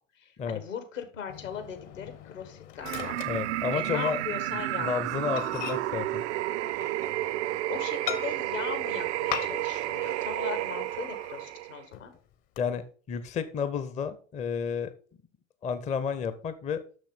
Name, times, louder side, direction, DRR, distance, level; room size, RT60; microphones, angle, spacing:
voice 1, 0.2-3.2 3.7-4.9 7.7-12.1, left 8 dB, 70° left, 8 dB, 1.7 m, -39 dB
Microwave oven, 1.3-4.2 4.5-4.7 5.0-5.1 5.4-7.4 8.1-8.7 9.3-9.9 10.2-10.3 10.7-11.5 11.9-12.6, left 11 dB, 50° left, 1.0 m, -40 dB
sound 1, 2.8-11.8, right 16 dB, 60° right, 0.5 m, -31 dB
voice 2, 3.3-4.2 4.8-6.2 12.6-14.9 15.6-16.8, left 6 dB, 20° left, 12 dB, 0.6 m, -31 dB
6.5 x 6.3 x 5.4 m, 0.41 s
figure-of-eight pair, 75°, 39 cm